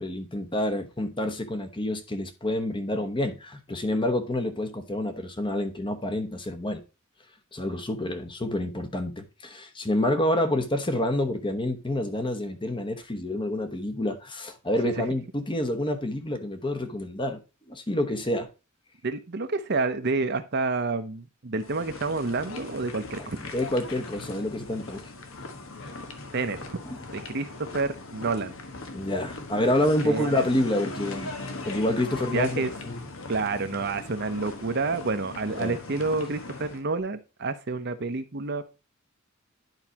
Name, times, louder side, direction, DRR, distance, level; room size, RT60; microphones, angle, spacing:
voice 1, 0.0-6.8 7.5-17.4 17.7-18.5 23.4-25.1 28.9-31.3 31.6-33.0 35.6-35.8, left 1 dB, 25° left, 1.0 m, -28 dB
voice 2, 19.0-23.4 26.3-26.8 27.1-28.5 30.0-30.5 32.3-32.7 33.3-38.6, right 3 dB, 55° right, 0.8 m, -29 dB
sound 1, 21.6-36.8, left 3 dB, 75° left, 1.3 m, -40 dB
11.0 x 4.8 x 2.9 m
head